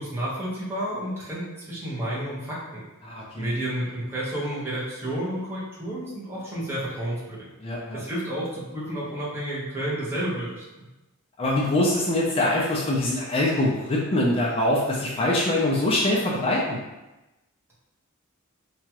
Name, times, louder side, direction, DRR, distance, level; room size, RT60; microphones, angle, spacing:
voice 1, 0.0-2.8 3.4-7.5 7.9-10.6, right 1 dB, 10° right, -8 dB, 0.9 m, -31 dB
voice 2, 3.0-3.5 7.6-8.0 11.4-16.8, left 1 dB, 25° left, -5 dB, 0.4 m, -24 dB
2.9 x 2.3 x 2.9 m, 1.0 s
head